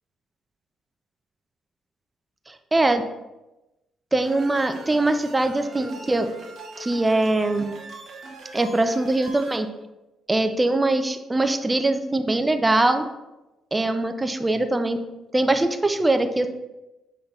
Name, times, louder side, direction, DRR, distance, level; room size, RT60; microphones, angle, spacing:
voice 1, 2.5-3.0 4.1-6.3 6.8-7.7 8.5-9.7 10.3-13.1 13.7-15.0 15.3-16.5, right 2 dB, 15° right, 8 dB, 0.4 m, -22 dB
sound 1, 4.2-9.6, right 3 dB, 55° right, 0.7 m, -41 dB
5.5 x 3.7 x 2.3 m, 1.0 s
cardioid pair, 90°, 0 cm